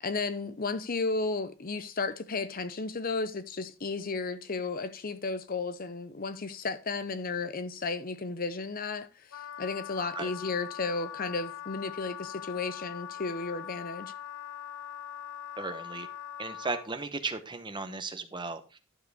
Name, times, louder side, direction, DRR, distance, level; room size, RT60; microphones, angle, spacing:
voice 1, 0.0-9.1 9.6-14.1, left 3 dB, 40° left, 0.7 m, -33 dB
Wind instrument woodwind instrument, 9.3-16.9, left 10 dB, 75° left, 0.6 m, -42 dB
voice 2, 15.6-16.1 16.4-18.8, right 3 dB, 20° right, 1.0 m, -36 dB
12.0 x 4.8 x 4.9 m
head